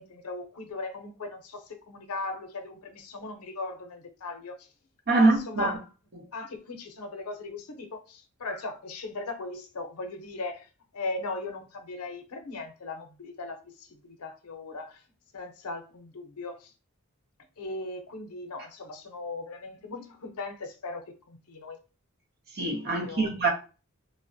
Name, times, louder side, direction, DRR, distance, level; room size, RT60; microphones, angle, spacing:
voice 1, 0.0-4.7 5.1-5.8 6.3-15.0 15.3-16.7 17.6-21.8 22.9-23.3, left 2 dB, 90° left, 0.6 m, -38 dB
voice 2, 5.1-5.7 22.5-23.5, right 3 dB, 45° right, 0.7 m, -24 dB
2.8 x 2.0 x 2.6 m
head